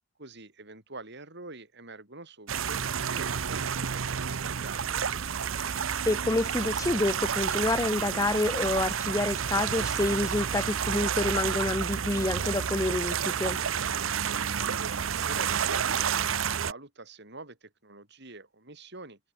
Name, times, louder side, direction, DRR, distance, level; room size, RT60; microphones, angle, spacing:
voice 1, 0.2-4.8 14.6-19.2, right 3 dB, 60° right, 6.7 m, -45 dB
sound 1, 2.5-16.7, right 7 dB, 75° right, 0.8 m, -30 dB
voice 2, 6.1-13.6, left 2 dB, 15° left, 0.6 m, -28 dB
head